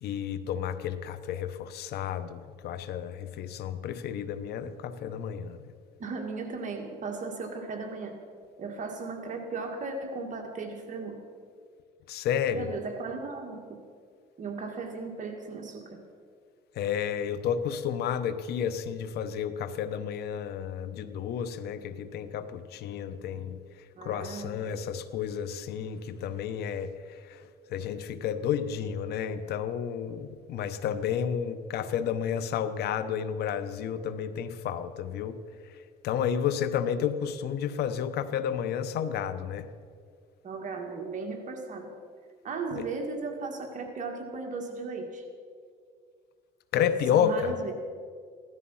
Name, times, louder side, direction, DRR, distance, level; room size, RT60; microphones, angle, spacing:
voice 1, 0.0-5.7 12.1-12.7 16.8-23.6 24.0-27.4 27.7-35.4 35.7-35.8 36.0-39.7 42.7-42.8 46.7-47.5, left 8 dB, 70° left, 12 dB, 1.0 m, -31 dB
voice 2, 6.0-8.2 8.6-11.2 12.5-13.8 14.4-16.0 24.0-24.8 40.4-41.9 42.4-45.2 46.7-47.7, right 4 dB, 45° right, 3 dB, 2.0 m, -36 dB
16.5 x 13.0 x 5.7 m, 2.1 s
cardioid pair, 110°, 17 cm